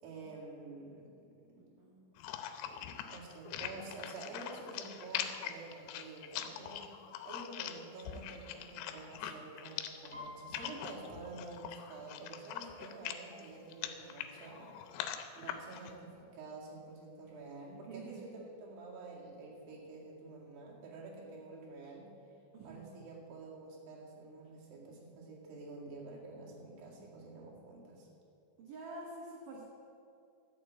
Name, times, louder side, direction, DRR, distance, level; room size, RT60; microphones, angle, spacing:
voice 1, 0.0-1.8 2.6-6.9 7.2-14.8 15.4-22.1 22.6-28.1, right 3 dB, 55° right, -3 dB, 3.4 m, -49 dB
voice 2, 1.8-2.1 17.9-18.5 22.5-23.0 28.6-29.6, right 3 dB, 85° right, -2 dB, 1.8 m, -48 dB
sound 1, 2.2-15.9, left 10 dB, 85° left, 3.4 m, -43 dB
Piano, 10.1-13.8 14.1-14.5 14.9-15.5 16.1-16.2 16.4-17.4 17.8-17.9, left 2 dB, 35° right, 3.9 m, -54 dB
12.0 x 6.9 x 8.4 m, 2.5 s
omnidirectional pair, 5.8 m